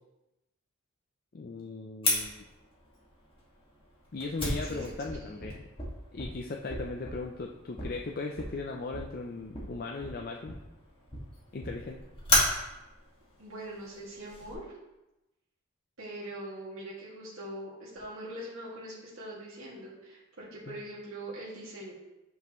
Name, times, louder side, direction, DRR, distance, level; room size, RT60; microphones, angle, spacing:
voice 1, 1.3-2.4 4.1-5.7 6.1-10.6 11.5-12.0 20.7-20.8, left 3 dB, 45° left, 1 dB, 0.5 m, -38 dB
Fire, 2.0-14.5, left 2 dB, 25° left, 2.0 m, -35 dB
voice 2, 4.6-4.9 5.2-5.4 13.4-14.7 16.0-21.9, right 1 dB, 75° right, -7 dB, 2.2 m, -42 dB
9.4 x 5.5 x 3.1 m, 0.98 s
head